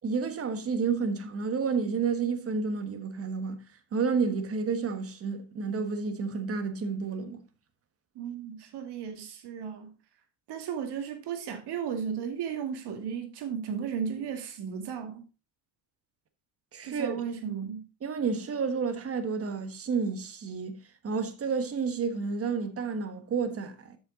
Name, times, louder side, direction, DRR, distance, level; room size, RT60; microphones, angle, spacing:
voice 1, 0.0-3.6 3.9-7.4 16.7-17.2 18.0-20.8 21.0-24.0, right 5 dB, 30° right, 1.3 m, -30 dB
voice 2, 8.2-9.9 10.5-15.2 16.8-17.8, right 7 dB, 60° right, 2.1 m, -35 dB
8.1 x 6.4 x 3.8 m
cardioid pair, 125°, 44 cm